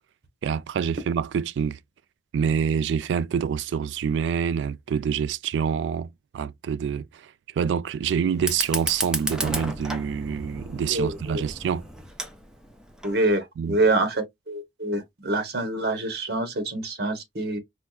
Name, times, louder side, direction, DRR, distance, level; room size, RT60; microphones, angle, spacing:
voice 1, 0.4-1.8 2.3-7.0 7.6-11.8 13.6-13.8, right 7 dB, 90° right, 0.3 m, -26 dB
Fire, 8.3-13.3, right 1 dB, 5° right, 0.5 m, -33 dB
voice 2, 10.9-11.5 13.0-17.6, right 2 dB, 65° right, 1.0 m, -26 dB
4.5 x 2.3 x 2.3 m
head